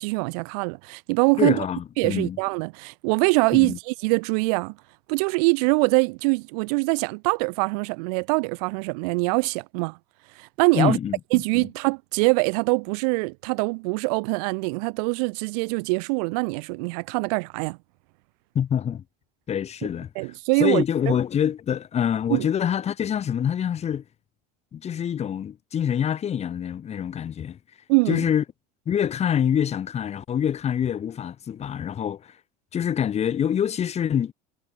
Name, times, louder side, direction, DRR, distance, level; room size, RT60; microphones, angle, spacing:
voice 1, 0.0-1.6 2.0-4.8 5.1-10.0 10.4-11.0 11.3-17.8 20.2-21.1 22.3-22.5 27.9-28.2, right 31 dB, 70° right, 0.4 m, -23 dB
voice 2, 1.4-2.4 3.5-3.8 10.7-11.2 11.6-11.7 18.5-19.0 19.5-20.1 20.6-24.0 24.7-27.6 28.1-28.4 28.9-32.3 32.7-34.3, left 9 dB, 30° left, 1.0 m, -25 dB
hypercardioid pair, 90°, 21 cm